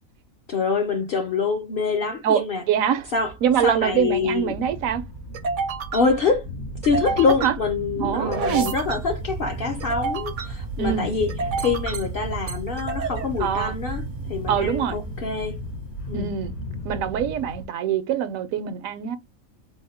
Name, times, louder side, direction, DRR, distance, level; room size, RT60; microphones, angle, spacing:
voice 1, 0.5-2.6 3.1-3.3 3.6-4.5 5.9-6.5 6.8-11.3 11.6-14.0 14.3-15.6 16.1-16.3, left 4 dB, 55° left, 0.6 m, -25 dB
voice 2, 2.7-3.1 3.4-5.0 7.4-7.5 8.0-8.7 10.8-11.1 13.4-13.7 14.5-15.0 16.1-16.5 16.8-19.2, right 9 dB, 75° right, 1.0 m, -24 dB
sound 1, 3.0-15.8, right 4 dB, 55° right, 0.6 m, -31 dB
sound 2, 4.5-17.6, left 1 dB, 90° left, 1.8 m, -37 dB
3.5 x 2.0 x 4.1 m
omnidirectional pair, 1.5 m